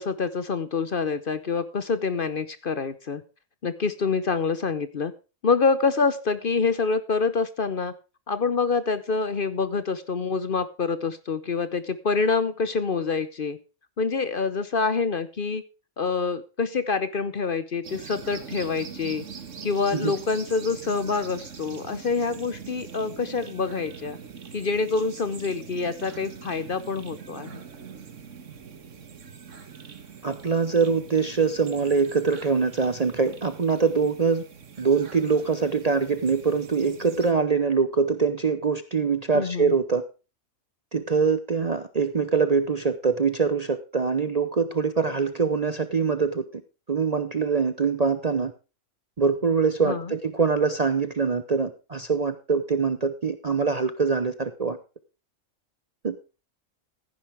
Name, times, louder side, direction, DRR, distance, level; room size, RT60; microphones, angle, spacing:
voice 1, 0.0-3.2 3.6-5.1 5.4-7.9 8.3-13.6 14.0-15.6 16.0-19.3 19.6-24.2 24.5-27.6 39.3-39.7 49.8-50.1, left 4 dB, 45° left, 13 dB, 0.9 m, -26 dB
sound 1, 17.8-37.3, right 6 dB, 65° right, 1.7 m, -43 dB
voice 2, 30.2-34.4 34.8-40.0 40.9-46.6 46.9-48.5 49.2-54.8 56.0-56.2, right 5 dB, 35° right, 11 dB, 0.7 m, -24 dB
15.0 x 10.5 x 3.5 m, 0.31 s
omnidirectional pair, 1.4 m